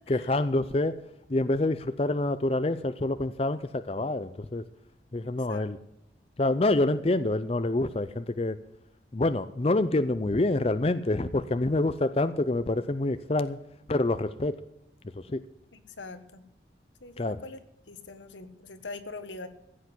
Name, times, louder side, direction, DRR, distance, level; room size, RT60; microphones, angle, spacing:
voice 1, 0.1-1.0 1.3-4.6 5.1-5.8 6.4-8.6 9.1-13.6 13.9-14.6 15.2-15.4 17.2-17.4, left 2 dB, 30° left, 11 dB, 0.5 m, -27 dB
voice 2, 5.2-5.7 15.7-16.4 17.0-17.6 17.9-19.5, left 3 dB, 80° left, 10 dB, 1.4 m, -43 dB
15.0 x 8.3 x 8.0 m, 0.81 s
head